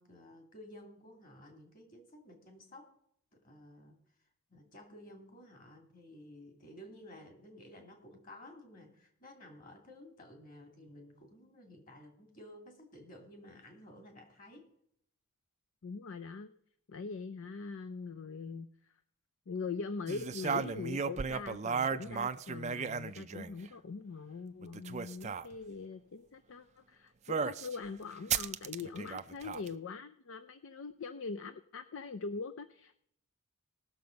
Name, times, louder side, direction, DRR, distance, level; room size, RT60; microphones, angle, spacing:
voice 1, 0.0-3.0 3.3-4.0 4.5-14.7, left 1 dB, 40° left, 3 dB, 2.6 m, -54 dB
voice 2, 15.8-16.5 16.9-18.7 19.5-33.0, left 4 dB, 60° left, 10 dB, 0.5 m, -42 dB
sound 1, 20.1-23.7 24.6-25.5 27.3-27.7 28.3-29.7, right 6 dB, 30° right, 0.4 m, -35 dB
18.5 x 6.8 x 5.2 m, 0.71 s
head